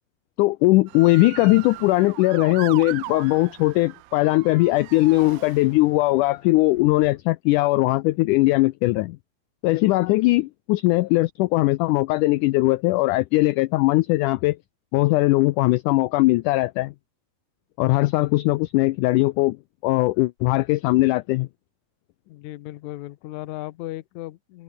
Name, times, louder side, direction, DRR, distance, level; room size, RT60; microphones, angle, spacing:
voice 1, 0.4-9.2 9.6-14.6 14.9-16.9 17.8-19.6 19.8-21.5, left 20 dB, 85° left, 1.8 m, -20 dB
Motor vehicle (road) / Siren, 0.9-6.1 6.7-7.2, right 18 dB, 85° right, 2.7 m, -39 dB
voice 2, 22.3-24.6, left 17 dB, 70° left, 1.9 m, -36 dB
omnidirectional pair, 4.2 m